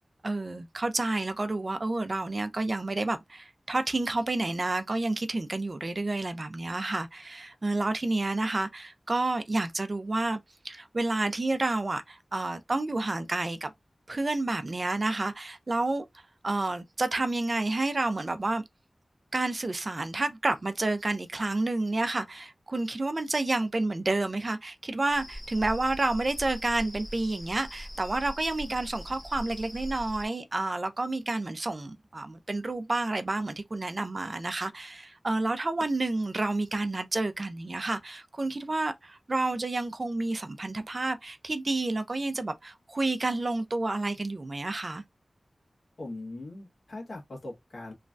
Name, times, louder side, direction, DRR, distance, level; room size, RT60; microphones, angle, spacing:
voice 1, 0.2-13.7 14.1-18.6 19.3-45.0, right 2 dB, 50° right, 0.4 m, -30 dB
sound 1, 25.1-30.3, equal, 20° left, 0.6 m, -41 dB
voice 2, 46.0-47.9, left 2 dB, 75° left, 1.2 m, -40 dB
3.1 x 2.2 x 2.5 m
wide cardioid pair, 70°, 0 cm